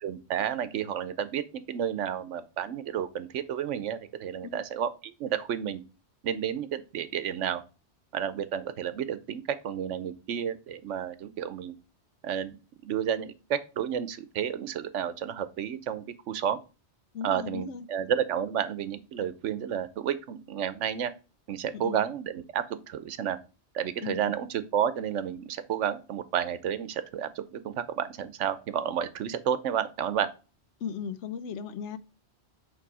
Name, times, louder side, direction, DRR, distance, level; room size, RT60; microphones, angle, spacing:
voice 1, 0.0-5.8 6.2-7.6 8.1-11.7 12.2-12.6 12.8-16.6 17.2-21.1 21.5-23.4 23.7-30.3, right 9 dB, 90° right, 1.1 m, -31 dB
voice 2, 17.1-17.9 21.7-22.0 24.0-24.2 30.8-32.0, left 7 dB, 85° left, 1.0 m, -36 dB
8.5 x 3.4 x 4.8 m
omnidirectional pair, 1.2 m